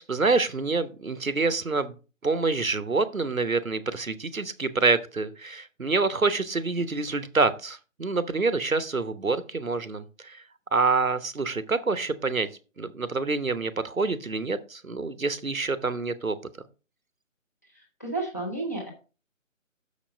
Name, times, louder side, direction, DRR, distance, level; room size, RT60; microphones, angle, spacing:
voice 1, 0.0-2.0 2.2-10.4 10.7-12.5 12.8-16.4, right 3 dB, 85° right, 14 dB, 1.0 m, -27 dB
voice 2, 17.7-18.9, right 2 dB, 10° left, -2 dB, 0.8 m, -32 dB
6.8 x 5.3 x 5.2 m, 0.34 s
figure-of-eight pair, 150°, 40 cm